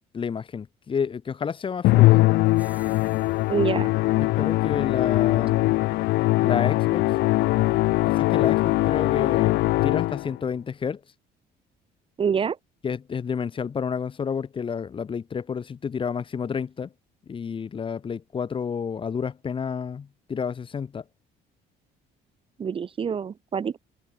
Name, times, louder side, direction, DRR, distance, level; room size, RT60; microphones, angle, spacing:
voice 1, 0.1-2.2 4.2-5.8 6.4-7.2 8.0-11.0 12.8-16.9 17.3-21.0, left 6 dB, 30° left, 0.9 m, -30 dB
Musical instrument, 1.8-10.4, left 19 dB, 75° left, 0.4 m, -21 dB
sound 1, 2.4-3.8, right 1 dB, 10° right, 5.0 m, -55 dB
voice 2, 3.5-3.9 12.2-12.6 22.6-23.8, right 7 dB, 30° right, 0.7 m, -26 dB
cardioid pair, 110°, 17 cm